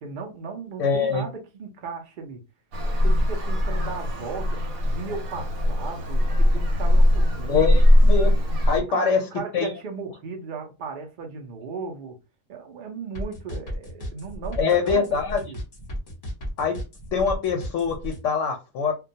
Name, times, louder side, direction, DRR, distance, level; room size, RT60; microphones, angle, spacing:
voice 1, 0.0-2.4 3.0-4.5 4.8-7.8 8.7-12.2 12.5-15.0 15.5-15.6, right 5 dB, 60° right, 0.5 m, -36 dB
voice 2, 0.8-1.2 7.5-8.3 8.7-9.2 9.5-9.7 14.6-15.5 16.6-16.8 17.1-18.9, left 5 dB, 70° left, 0.8 m, -23 dB
Traffic noise roadway noise, 2.7-8.8, left 1 dB, 90° right, 1.1 m, -20 dB
sound 1, 13.2-18.2, equal, 35° left, 0.8 m, -34 dB
2.2 x 2.2 x 2.6 m
omnidirectional pair, 1.4 m